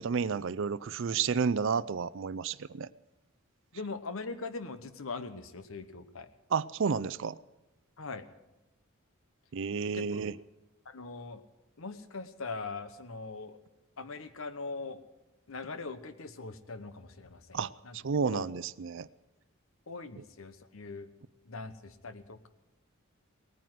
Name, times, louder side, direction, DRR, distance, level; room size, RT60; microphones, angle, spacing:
voice 1, 0.0-2.9 6.5-7.4 9.5-10.4 17.5-19.1 20.2-20.3, right 5 dB, 60° right, 19 dB, 0.5 m, -31 dB
voice 2, 3.7-6.3 8.0-8.2 9.9-10.2 10.8-11.4 11.8-13.6 14.0-15.0 15.5-17.6 17.8-18.0 18.3-18.5 19.9-21.1 21.5-22.5, left 3 dB, 75° left, 11 dB, 1.0 m, -41 dB
19.0 x 9.3 x 7.6 m, 1.0 s
head